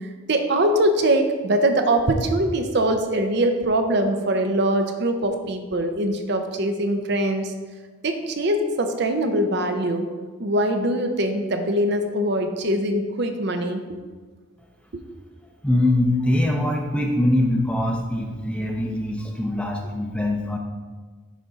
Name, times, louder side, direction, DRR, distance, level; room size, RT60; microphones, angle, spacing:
voice 1, 0.0-7.5 8.0-10.1 10.4-14.0 14.9-15.0, right 1 dB, 55° right, 6 dB, 0.6 m, -22 dB
voice 2, 15.6-20.6, left 1 dB, 5° left, 1 dB, 0.6 m, -23 dB
10.0 x 3.7 x 3.9 m, 1.4 s
head